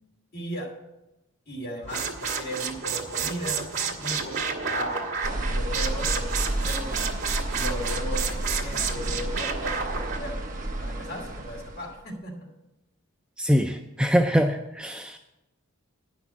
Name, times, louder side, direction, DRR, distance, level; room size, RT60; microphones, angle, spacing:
voice 1, 0.3-0.7 1.5-3.7 4.0-6.9 7.5-10.4 10.8-12.5, equal, 45° left, -1 dB, 2.6 m, -36 dB
sound 1, 1.8-10.2, right 5 dB, 65° right, 1.7 m, -30 dB
sound 2, 5.2-12.0, right 1 dB, 35° right, 1.1 m, -31 dB
voice 2, 13.4-15.2, equal, 5° right, 5 dB, 0.4 m, -23 dB
10.5 x 6.0 x 8.3 m, 0.97 s
head